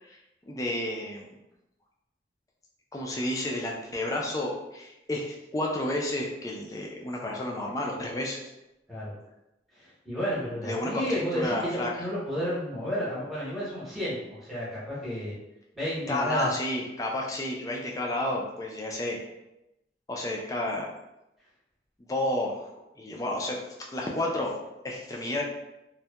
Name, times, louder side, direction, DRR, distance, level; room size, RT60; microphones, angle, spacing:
voice 1, 0.5-1.3 2.9-8.4 10.6-12.0 16.1-19.2 20.1-20.9 22.1-22.6 23.0-23.6 23.9-24.5 24.8-25.4, left 1 dB, 20° left, -1 dB, 0.3 m, -31 dB
voice 2, 9.7-15.3 15.7-16.5, equal, ahead, -10 dB, 0.8 m, -32 dB
2.7 x 2.1 x 2.2 m, 0.91 s
head